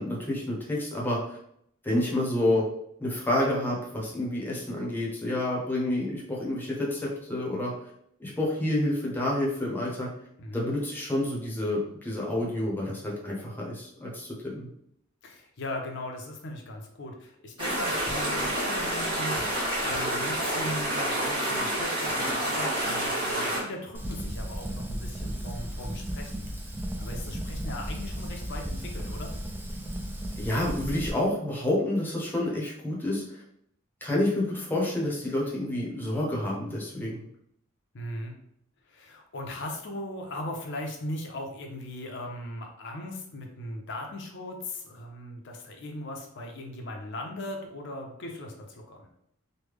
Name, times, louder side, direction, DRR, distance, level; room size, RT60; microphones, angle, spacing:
voice 1, 0.0-1.4 1.8-2.6 3.0-7.7 8.2-10.1 10.5-14.7 30.4-33.2 34.0-37.2, left 1 dB, 10° left, -4 dB, 0.8 m, -29 dB
voice 2, 15.2-19.4 19.8-26.5 27.0-29.3 37.9-38.4 38.9-49.1, left 1 dB, 60° left, 2 dB, 0.6 m, -38 dB
sound 1, 17.6-23.6, right 1 dB, 25° right, 1.0 m, -28 dB
Fire, 23.9-31.1, equal, 10° right, 0.4 m, -35 dB
3.2 x 2.2 x 3.4 m, 0.72 s
head